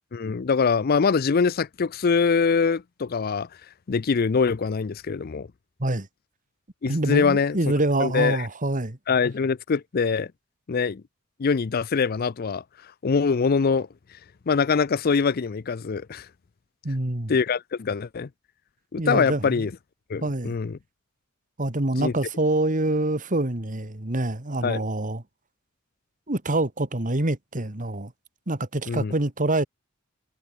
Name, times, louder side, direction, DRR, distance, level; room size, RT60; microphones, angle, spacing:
voice 1, 0.1-3.5 3.9-5.5 6.8-7.6 8.0-8.4 9.1-10.3 10.7-11.0 11.4-12.6 13.0-13.9 14.5-16.3 17.3-18.3 18.9-19.7 20.1-20.8 22.0-22.1 24.6-24.8 28.9-29.1, left 5 dB, 50° left, 0.5 m, -23 dB
voice 2, 6.9-9.0 16.8-17.4 19.0-19.7 20.2-20.6 21.6-25.2 26.3-28.1 28.5-29.7, right 2 dB, 40° right, 2.1 m, -26 dB
head